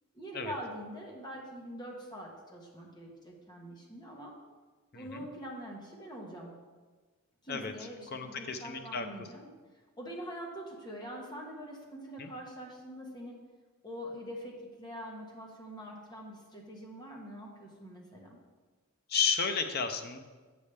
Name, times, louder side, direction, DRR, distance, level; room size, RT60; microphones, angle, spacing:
voice 1, 0.1-4.3 4.9-6.5 7.4-9.5 10.0-13.4 13.8-18.4, equal, 20° left, -2 dB, 1.3 m, -44 dB
voice 2, 4.9-5.3 7.5-7.7 8.1-9.1 12.2-12.3 19.1-20.2, left 6 dB, 45° left, 7 dB, 0.6 m, -32 dB
8.4 x 7.1 x 3.3 m, 1.4 s
head